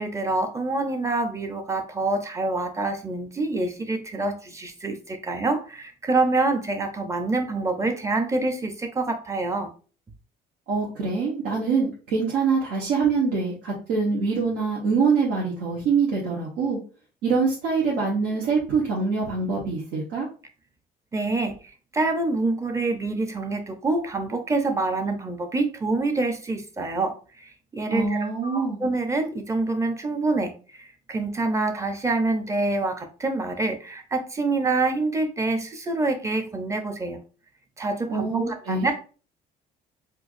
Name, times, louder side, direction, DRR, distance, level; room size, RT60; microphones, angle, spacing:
voice 1, 0.0-9.7 21.1-21.5 21.9-37.2 37.8-38.9, right 3 dB, 20° right, 6 dB, 0.6 m, -26 dB
voice 2, 10.7-16.8 17.2-20.3 27.9-28.8 38.1-38.9, right 5 dB, 85° right, -4 dB, 1.0 m, -24 dB
4.4 x 2.5 x 2.5 m, 0.37 s
cardioid pair, 110°, 17 cm